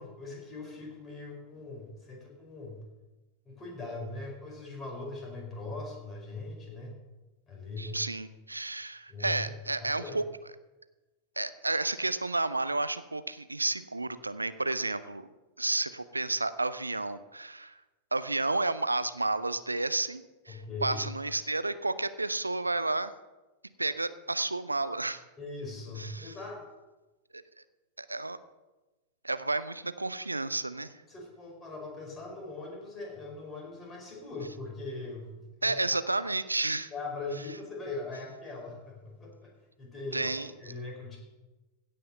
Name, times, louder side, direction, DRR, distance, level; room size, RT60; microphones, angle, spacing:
voice 1, 0.0-2.8 3.4-6.9 7.5-8.0 9.1-10.2 20.5-21.0 25.4-26.6 31.1-36.0 36.9-39.5 39.8-40.3 40.6-41.2, left 3 dB, 20° left, -1 dB, 4.4 m, -41 dB
voice 2, 7.8-10.2 11.4-15.3 15.6-17.8 18.1-23.1 23.8-25.2 26.0-26.3 27.3-27.4 28.0-28.4 29.2-30.9 35.6-36.9 40.1-40.5, right 2 dB, 80° right, 14 dB, 0.6 m, -31 dB
16.5 x 5.7 x 6.6 m, 1.1 s
figure-of-eight pair, 90°, 0 cm